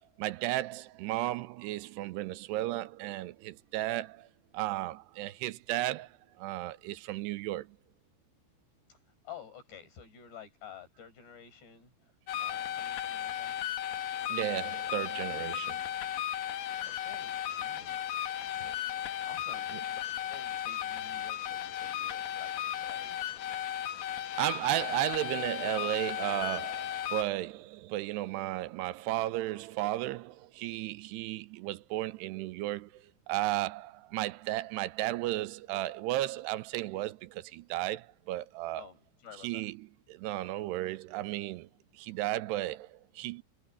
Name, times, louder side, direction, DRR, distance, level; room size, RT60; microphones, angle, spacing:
voice 1, 0.0-4.3 4.5-7.8 14.3-15.9 18.2-18.3 18.6-18.7 19.7-19.8 24.4-38.8 39.4-41.7 41.9-43.4, right 16 dB, 90° right, 2.8 m, -34 dB
voice 2, 8.9-12.1 12.4-13.6 16.8-18.7 19.2-20.0 20.3-23.3 38.8-39.7, left 8 dB, 85° left, 7.8 m, -51 dB
sound 1, 12.3-27.2, left 11 dB, 65° left, 2.7 m, -35 dB
omnidirectional pair, 4.8 m